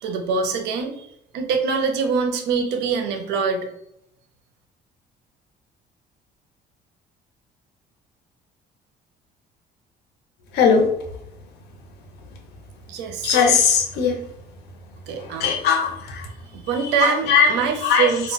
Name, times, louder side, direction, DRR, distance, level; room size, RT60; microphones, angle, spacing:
voice 1, 0.0-1.1 1.3-3.7 12.9-13.4 15.1-15.5 16.5-18.3, right 5 dB, 90° right, 5 dB, 0.5 m, -24 dB
voice 2, 10.5-10.9 13.2-14.1 15.4-16.2 17.0-17.5 17.8-18.1, left 6 dB, 75° left, 2 dB, 0.7 m, -18 dB
2.3 x 2.1 x 3.9 m, 0.79 s
cardioid pair, 110°, 17 cm